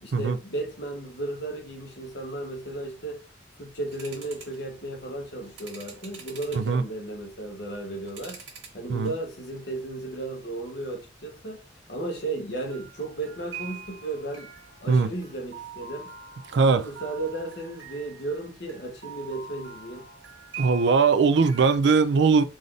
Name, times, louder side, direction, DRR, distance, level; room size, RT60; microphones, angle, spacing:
voice 1, 0.0-3.2 3.6-8.4 8.7-11.6 11.9-14.5 14.8-16.1 16.6-20.1, right 2 dB, 60° left, 1.1 m, -34 dB
sound 1, 3.9-4.6 5.4-6.7 7.4-8.8 9.0-9.6 10.0-10.2 12.7-21.8, right 6 dB, 85° right, 1.5 m, -44 dB
voice 2, 16.5-16.8 20.6-22.4, right 4 dB, 65° right, 0.4 m, -20 dB
4.0 x 2.5 x 3.3 m
head